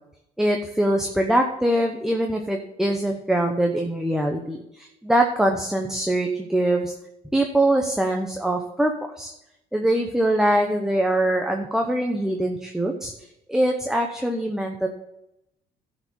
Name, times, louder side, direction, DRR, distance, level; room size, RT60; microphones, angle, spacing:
voice 1, 0.4-6.9 7.3-8.9 9.2-9.3 9.7-13.1 13.5-14.9, right 1 dB, 5° right, 2 dB, 0.9 m, -23 dB
12.0 x 5.1 x 7.0 m, 0.85 s
cardioid pair, 110°, 17 cm